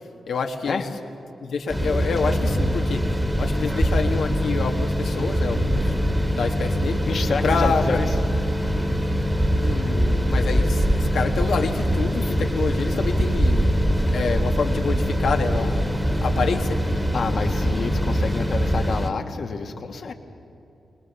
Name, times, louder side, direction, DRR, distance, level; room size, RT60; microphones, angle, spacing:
voice 1, 0.3-0.9 1.4-3.0 3.4-5.9 6.3-7.0 7.4-8.0 9.5-13.7 14.1-15.8 16.2-16.8, left 5 dB, 75° left, 3 dB, 1.6 m, -27 dB
sound 1, 1.7-19.1, equal, 15° right, 1.9 m, -23 dB
voice 2, 7.1-8.1 12.2-12.3 17.1-20.1, left 4 dB, 60° left, 6 dB, 1.6 m, -28 dB
23.0 x 21.0 x 7.0 m, 2.8 s
cardioid pair, 65°, 0 cm